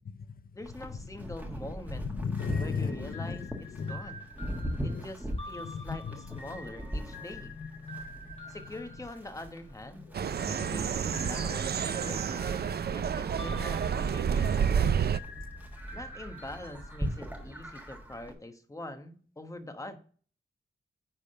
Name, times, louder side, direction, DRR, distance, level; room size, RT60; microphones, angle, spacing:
voice 1, 0.5-2.1 2.6-3.5 3.8-4.3 4.8-7.5 8.5-10.0 10.5-12.5 12.9-15.2 15.9-20.0, left 1 dB, 15° left, 7 dB, 1.0 m, -44 dB
Livestock farm animals working animals, 0.6-18.3, equal, 10° right, 1.4 m, -41 dB
voice 2, 2.0-4.0 4.7-5.0 5.9-6.0 7.6-8.5 10.3-10.8, left 5 dB, 45° left, 14 dB, 0.5 m, -36 dB
sound 1, 2.4-9.8 10.4-17.6, left 1 dB, 30° left, 2.2 m, -48 dB
sound 2, 10.1-15.2, right 7 dB, 55° right, 0.4 m, -29 dB
10.0 x 3.5 x 6.5 m, 0.43 s
wide cardioid pair, 170°, 20 cm